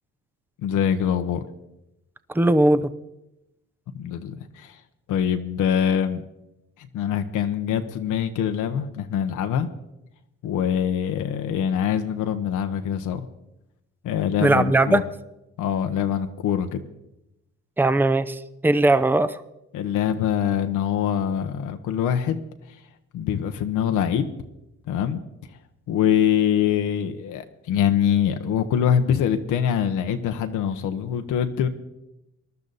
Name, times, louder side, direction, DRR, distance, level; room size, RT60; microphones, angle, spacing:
voice 1, 0.6-1.4 3.9-4.7 5.1-6.2 6.9-9.7 10.4-13.3 14.0-15.0 15.6-16.8 19.7-22.4 23.1-24.3 24.9-25.2 25.9-31.7, left 9 dB, 85° left, 6 dB, 1.1 m, -24 dB
voice 2, 2.3-2.9 14.4-15.0 17.8-19.4, right 2 dB, 5° right, 13 dB, 0.7 m, -19 dB
20.5 x 12.0 x 4.1 m, 0.90 s
cardioid pair, 90°, 30 cm